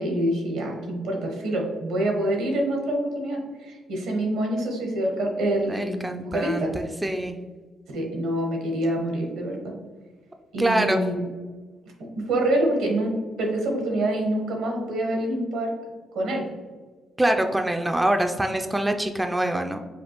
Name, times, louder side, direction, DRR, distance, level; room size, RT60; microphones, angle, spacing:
voice 1, 0.0-6.7 7.9-9.8 10.5-11.3 12.0-15.7 16.1-16.5, right 1 dB, 85° right, 1 dB, 1.1 m, -26 dB
voice 2, 5.7-7.4 10.6-11.2 17.2-19.8, right 1 dB, 10° right, 5 dB, 0.3 m, -25 dB
5.1 x 2.4 x 2.9 m, 1.4 s
cardioid pair, 90°, 0 cm